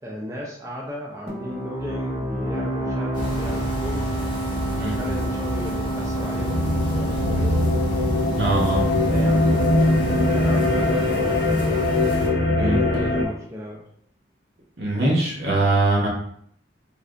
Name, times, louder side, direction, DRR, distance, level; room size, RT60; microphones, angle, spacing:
voice 1, 0.0-4.1 4.8-7.6 8.6-9.7 10.2-11.7 12.5-13.8, left 1 dB, 15° right, -5 dB, 0.4 m, -35 dB
sound 1, 1.3-12.6, right 2 dB, 35° right, 0.9 m, -29 dB
sound 2, 3.1-12.3, equal, 25° left, 1.0 m, -31 dB
sound 3, 6.3-13.2, left 2 dB, 55° left, 0.5 m, -22 dB
voice 2, 8.4-8.9 12.6-12.8 14.8-16.1, right 2 dB, 60° right, -3 dB, 0.9 m, -22 dB
3.3 x 2.6 x 2.4 m, 0.65 s
head